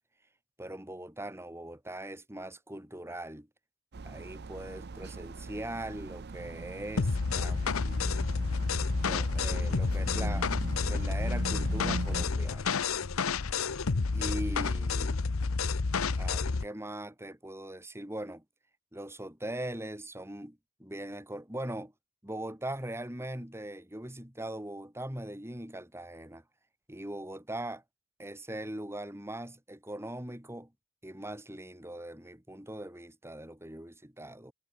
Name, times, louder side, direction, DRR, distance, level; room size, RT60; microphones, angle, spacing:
voice 1, 0.6-3.5 4.0-8.1 9.0-10.5 10.9-12.8 14.1-15.2 16.1-18.4 18.9-21.9 22.2-26.4 26.9-27.8 28.2-30.7 31.0-34.5, right 1 dB, 15° right, 4.0 m, -41 dB
sound 1, 3.9-12.3, right 3 dB, 50° right, 0.6 m, -41 dB
Downsample Beat, 7.0-16.7, left 4 dB, 85° left, 0.8 m, -30 dB
head